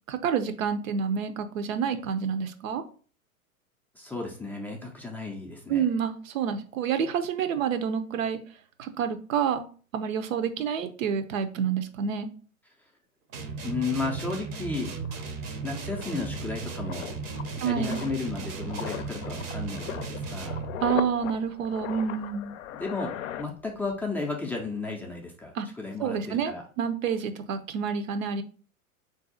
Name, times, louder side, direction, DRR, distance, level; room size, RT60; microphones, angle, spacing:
voice 1, 0.1-2.8 5.7-8.4 8.8-9.7 9.9-12.3 17.6-18.0 20.8-22.5 25.5-25.7 26.0-28.4, right 7 dB, 65° right, 10 dB, 0.7 m, -28 dB
voice 2, 3.9-5.9 13.6-14.9 15.6-17.1 17.6-20.6 22.7-26.6, left 3 dB, 5° left, -1 dB, 0.4 m, -34 dB
sound 1, 13.3-20.8, right 4 dB, 30° right, 0.6 m, -36 dB
sound 2, 14.6-14.7 15.0-24.1 24.3-24.6, left 11 dB, 60° left, 0.6 m, -39 dB
4.0 x 2.7 x 3.8 m, 0.41 s
hypercardioid pair, 105°, 42 cm